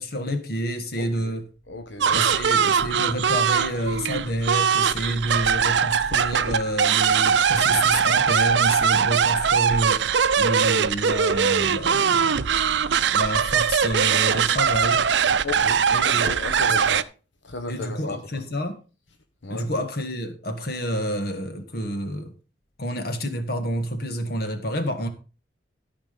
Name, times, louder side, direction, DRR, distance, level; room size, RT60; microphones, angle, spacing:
voice 1, 0.0-1.5 2.1-12.4 13.1-15.1 15.9-16.3 16.6-16.8 17.7-18.8 19.5-22.3 22.8-25.1, equal, 55° left, 1.8 m, -29 dB
voice 2, 1.0-1.3 1.7-2.4 15.4-17.1 17.4-18.4 19.4-19.7, left 3 dB, 80° left, 1.1 m, -34 dB
sound 1, 2.0-17.0, right 7 dB, 70° right, 0.5 m, -21 dB
14.0 x 5.1 x 5.3 m
head